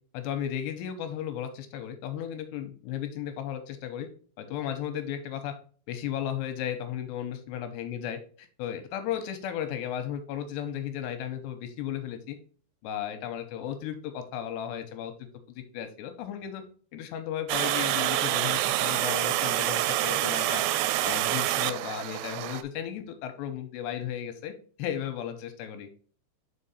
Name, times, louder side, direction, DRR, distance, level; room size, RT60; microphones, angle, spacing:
voice 1, 0.1-4.1 4.4-5.5 5.9-12.4 12.8-15.1 15.5-16.6 16.9-20.6 21.0-24.5 24.8-25.9, left 10 dB, 85° left, 8 dB, 2.6 m, -35 dB
Water, 17.5-22.6, right 14 dB, 85° right, 2.7 m, -27 dB
5.6 x 5.2 x 4.1 m, 0.42 s
omnidirectional pair, 5.2 m